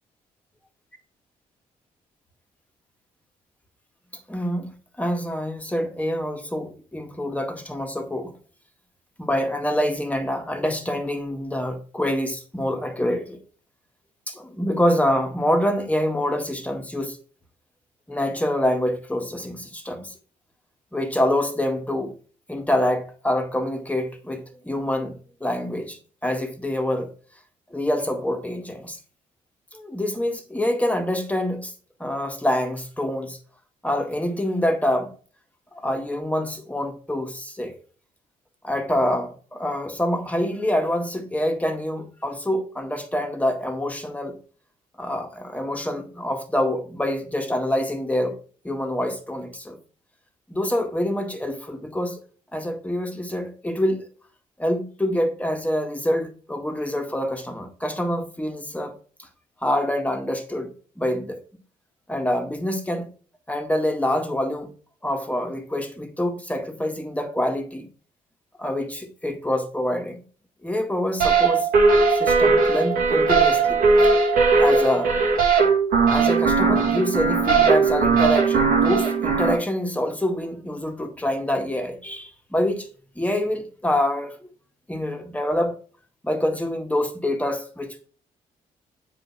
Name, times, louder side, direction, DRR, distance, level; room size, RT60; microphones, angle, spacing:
voice 1, 4.3-4.7 5.0-8.3 9.2-13.4 14.3-17.2 18.1-20.1 20.9-22.1 22.5-27.1 27.7-29.0 29.7-31.7 32.0-33.4 33.8-35.1 35.8-37.8 38.6-44.4 45.0-48.4 48.6-49.8 50.5-52.2 52.5-54.0 54.6-58.9 59.2-59.3 59.6-60.7 61.0-61.4 62.1-63.1 63.5-64.7 65.0-67.9 68.6-70.2 70.6-71.7 72.1-73.8 74.6-75.2 76.1-82.9 83.2-84.4 84.9-85.8 86.2-88.1, left 1 dB, 10° left, 1.8 m, -26 dB
sound 1, 71.2-79.6, right 4 dB, 80° right, 2.2 m, -18 dB
8.0 x 5.0 x 4.4 m
supercardioid pair, 65°, 15 cm